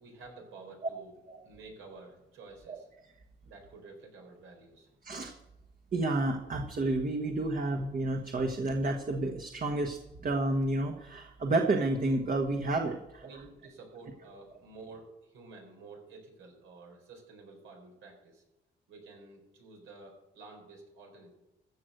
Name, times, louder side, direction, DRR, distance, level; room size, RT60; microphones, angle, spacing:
voice 1, 0.0-1.1 1.4-2.9 3.4-4.9 13.2-18.4 18.9-21.3, right 3 dB, 85° right, 1 dB, 4.3 m, -51 dB
voice 2, 5.9-13.3, right 2 dB, 45° right, 2 dB, 1.4 m, -30 dB
14.5 x 6.4 x 7.9 m, 0.92 s
cardioid pair, 90°, 20 cm